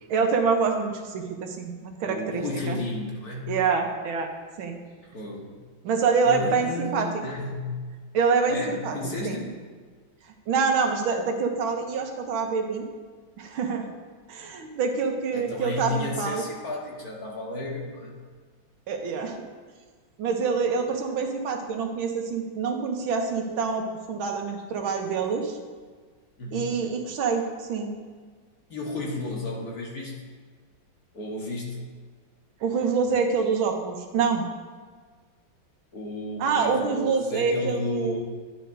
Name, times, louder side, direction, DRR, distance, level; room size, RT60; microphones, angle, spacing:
voice 1, 0.1-2.8 3.5-4.3 4.6-4.8 5.8-7.1 8.1-9.0 9.2-9.4 10.5-12.8 13.4-13.9 14.3-16.4 18.9-19.4 20.2-25.6 26.5-27.9 32.6-34.5 36.4-38.2, right 5 dB, 85° right, 4 dB, 1.7 m, -26 dB
voice 2, 2.0-3.6 5.1-5.6 6.2-7.9 8.5-9.5 15.3-18.2 26.4-26.8 28.7-30.2 31.1-31.8 35.9-38.2, left 2 dB, 50° left, -2 dB, 1.7 m, -33 dB
11.0 x 8.8 x 2.7 m, 1.5 s
omnidirectional pair, 2.2 m